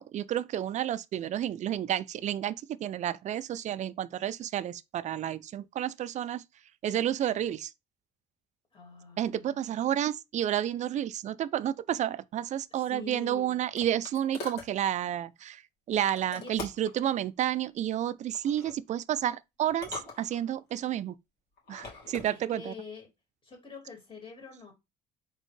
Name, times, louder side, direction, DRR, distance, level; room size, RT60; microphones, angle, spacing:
voice 1, 0.0-6.4 6.8-7.7 9.2-15.6 15.9-21.1 21.7-22.7, right 11 dB, 45° right, 0.4 m, -31 dB
voice 2, 8.7-10.0 12.7-13.6 16.3-16.5 20.8-21.0 22.3-23.1 23.4-24.7, left 6 dB, 30° left, 2.0 m, -46 dB
sound 1, 13.0-14.7 16.2-17.0 18.3-18.8 19.7-20.7 21.6-22.3, left 3 dB, 80° left, 2.2 m, -43 dB
4.2 x 3.5 x 3.2 m
cardioid pair, 110°, 17 cm